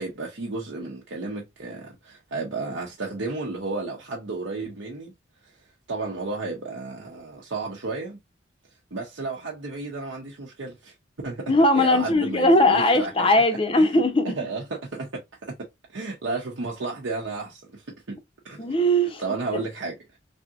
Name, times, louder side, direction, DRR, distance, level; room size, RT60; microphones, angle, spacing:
voice 1, 0.0-5.1 5.4-5.5 5.9-8.2 8.9-10.9 11.2-13.3 13.7-15.6 15.9-18.2 18.4-18.7 19.2-20.2, right 3 dB, 70° right, 0.7 m, -33 dB
voice 2, 11.5-14.3 18.6-19.6, left 1 dB, 25° left, 0.6 m, -20 dB
3.4 x 2.7 x 2.4 m
head